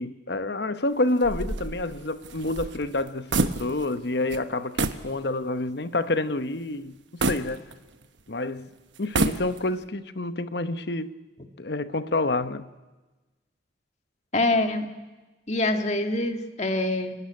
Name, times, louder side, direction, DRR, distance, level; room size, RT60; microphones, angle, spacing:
voice 1, 0.0-7.6 8.3-8.7 9.0-11.2 11.6-12.7, left 2 dB, 60° left, 0.9 m, -28 dB
sound 1, 1.2-4.0 4.3-4.4 4.8-5.1 5.6-5.7 7.2-8.2 9.0-9.8, right 3 dB, 80° right, 1.1 m, -28 dB
voice 2, 14.3-14.9 15.5-17.1, left 2 dB, 35° left, 1.7 m, -25 dB
29.5 x 12.5 x 9.7 m
head